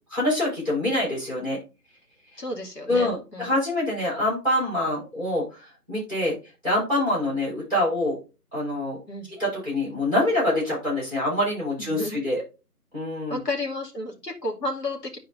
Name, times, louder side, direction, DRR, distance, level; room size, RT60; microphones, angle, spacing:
voice 1, 0.1-1.6 2.9-6.3 6.6-8.2 8.5-9.0 9.3-12.4 12.9-13.4, left 1 dB, 15° left, -6 dB, 4.1 m, -25 dB
voice 2, 2.4-3.5 9.1-9.3 11.8-12.2 13.3-15.2, left 2 dB, 80° left, 0 dB, 2.5 m, -32 dB
12.0 x 4.5 x 2.6 m, 0.30 s
figure-of-eight pair, 160°, 47 cm